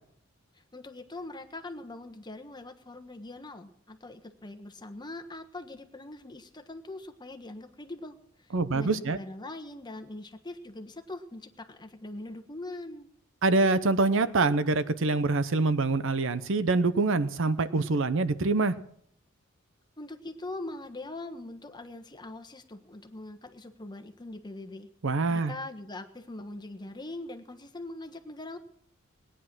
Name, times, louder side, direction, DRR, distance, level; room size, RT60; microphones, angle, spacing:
voice 1, 0.7-13.1 20.0-24.9 25.3-28.6, left 2 dB, 20° left, 6 dB, 1.3 m, -42 dB
voice 2, 8.5-9.2 13.4-18.7 25.0-25.5, right 3 dB, 65° right, 13 dB, 0.8 m, -25 dB
19.0 x 10.0 x 6.1 m, 0.68 s
head